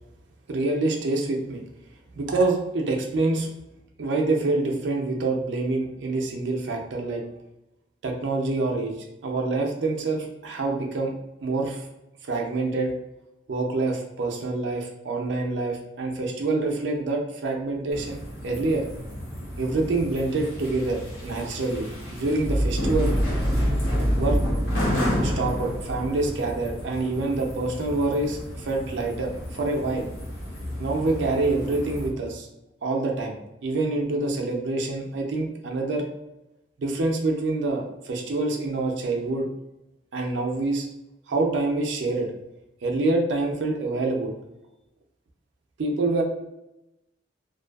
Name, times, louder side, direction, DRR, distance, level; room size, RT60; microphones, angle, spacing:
voice 1, 0.5-1.6 2.2-3.5 4.0-7.2 8.0-8.9 9.2-11.1 11.4-11.8 12.2-12.9 13.5-18.2 18.4-18.8 19.6-23.1 24.1-24.4 25.2-30.1 30.8-32.5 32.8-36.1 36.8-39.5 40.1-40.9 41.3-42.3 42.8-44.3 45.8-46.2, right 2 dB, 80° right, 1 dB, 0.4 m, -26 dB
sound 1, 17.9-32.1, equal, 90° left, 0.8 m, -29 dB
2.5 x 2.3 x 2.3 m, 0.93 s
head